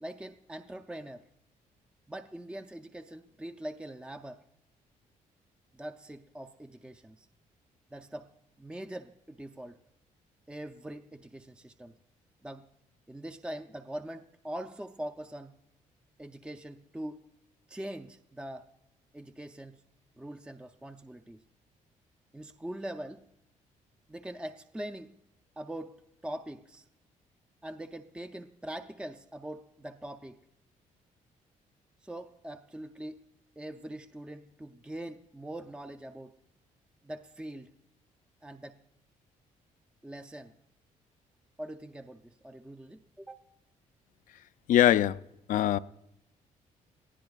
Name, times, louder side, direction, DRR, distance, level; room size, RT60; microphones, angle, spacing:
voice 1, 0.0-1.3 2.1-4.4 5.7-7.3 7.9-8.3 8.6-9.8 10.5-12.0 12.4-12.7 13.1-15.6 16.2-17.3 17.7-18.7 19.1-19.8 20.2-21.4 22.3-23.3 24.1-25.1 25.6-26.0 26.2-26.8 27.6-30.5 32.0-33.2 33.6-36.4 37.0-37.8 38.4-38.8 40.0-40.5 41.6-43.4, right 1 dB, 5° right, 0.5 m, -42 dB
voice 2, 44.7-45.2 45.5-45.8, left 12 dB, 70° left, 0.4 m, -22 dB
21.0 x 15.0 x 2.3 m
cardioid pair, 100°, 14 cm